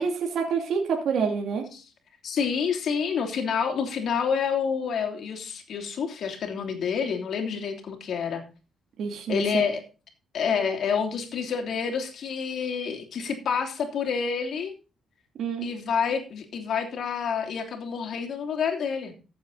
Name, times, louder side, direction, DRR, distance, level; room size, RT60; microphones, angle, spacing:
voice 1, 0.0-1.6 9.0-9.6 15.4-15.7, right 6 dB, 70° right, 2 dB, 2.6 m, -27 dB
voice 2, 2.2-8.4 9.3-9.8 10.3-14.7 15.6-19.1, left 6 dB, 65° left, 4 dB, 3.0 m, -28 dB
14.5 x 7.9 x 4.0 m, 0.33 s
cardioid pair, 90°, 0 cm